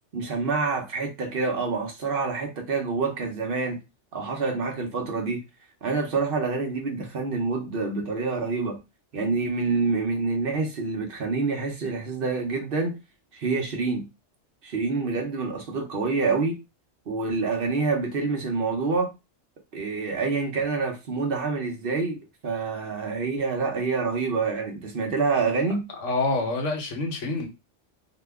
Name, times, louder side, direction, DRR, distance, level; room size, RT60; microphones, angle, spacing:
voice 1, 0.1-3.8 4.1-5.4 5.8-8.8 9.1-12.9 13.3-14.1 14.6-16.6 17.1-19.1 19.7-25.8, right 4 dB, 55° right, 0.9 m, -27 dB
voice 2, 25.9-27.5, left 3 dB, 85° left, 1.2 m, -27 dB
2.9 x 2.1 x 3.4 m
omnidirectional pair, 1.2 m